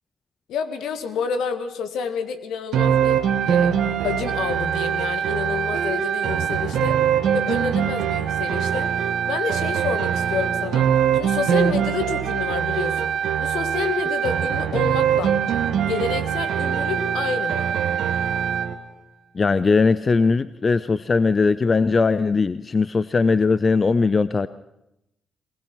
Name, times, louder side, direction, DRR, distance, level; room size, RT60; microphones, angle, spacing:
voice 1, 0.5-7.0 7.3-8.9 9.3-13.1 13.4-15.4 15.8-17.7, left 6 dB, 75° left, 9 dB, 1.8 m, -29 dB
sound 1, 2.7-18.8, right 8 dB, 70° right, 1.4 m, -22 dB
voice 2, 19.3-24.5, left 4 dB, 40° left, 16 dB, 0.7 m, -19 dB
23.0 x 20.5 x 6.1 m, 0.85 s
hypercardioid pair, 45°, 0 cm